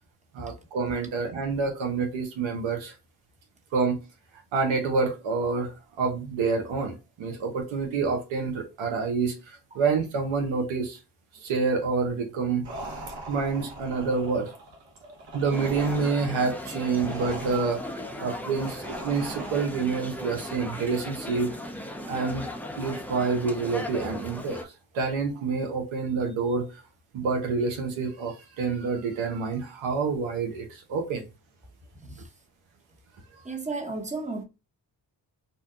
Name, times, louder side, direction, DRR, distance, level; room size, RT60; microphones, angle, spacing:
voice 1, 0.3-2.9 3.7-4.0 4.5-9.3 9.7-11.0 11.4-12.7 13.3-14.5 15.3-17.8 18.2-21.5 22.1-22.5 22.7-24.6 24.9-26.7 27.1-31.2, right 4 dB, 85° right, 0.9 m, -27 dB
sound 1, 12.6-20.0, right 1 dB, 60° right, 1.2 m, -41 dB
sound 2, 15.5-24.6, left 1 dB, 5° left, 0.6 m, -37 dB
voice 2, 32.0-32.3 33.4-34.4, right 3 dB, 15° right, 0.9 m, -34 dB
2.7 x 2.2 x 3.6 m
supercardioid pair, 40°, 46 cm